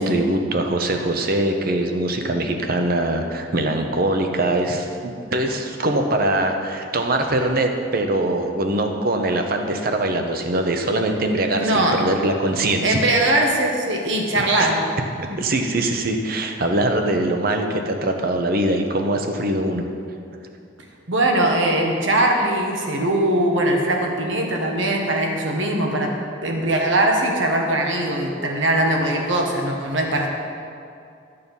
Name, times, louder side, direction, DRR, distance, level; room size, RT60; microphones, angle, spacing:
voice 1, 0.0-13.0 14.6-14.7 15.3-19.9, right 1 dB, 50° right, 4 dB, 0.9 m, -22 dB
voice 2, 11.6-12.0 12.8-14.8 15.3-15.4 21.1-26.1 26.4-30.3, right 1 dB, 75° right, 1 dB, 1.5 m, -21 dB
12.5 x 6.8 x 5.4 m, 2.5 s
head